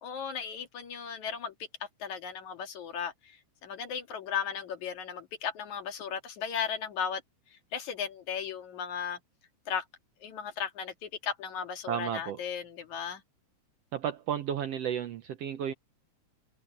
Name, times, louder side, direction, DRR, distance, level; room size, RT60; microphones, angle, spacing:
voice 1, 0.0-1.5 2.0-3.1 3.6-7.2 7.7-9.2 9.7-9.8 10.2-13.2, left 7 dB, 65° left, 3.3 m, -36 dB
voice 2, 11.9-12.4 13.9-15.7, right 9 dB, 70° right, 1.6 m, -33 dB
omnidirectional pair, 3.6 m